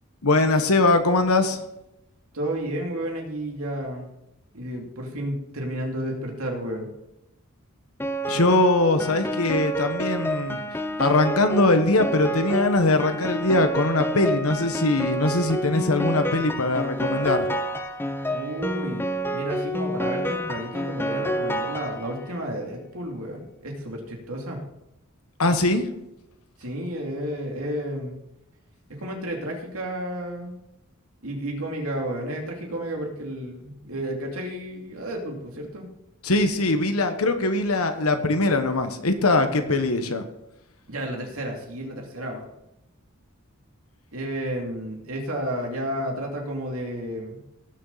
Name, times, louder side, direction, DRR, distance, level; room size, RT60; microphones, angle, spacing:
voice 1, 0.2-1.6 8.3-10.6 11.0-17.5 25.4-25.9 36.2-40.2, left 2 dB, 80° left, 8 dB, 1.2 m, -21 dB
voice 2, 2.3-4.1 4.5-6.9 18.3-19.0 19.3-24.6 26.6-28.2 28.9-30.6 31.2-35.9 40.9-42.4 44.1-47.4, right 1 dB, 75° right, 1 dB, 2.7 m, -32 dB
Piano, 8.0-22.4, equal, 10° left, 0.6 m, -29 dB
17.5 x 7.0 x 4.1 m, 0.86 s
head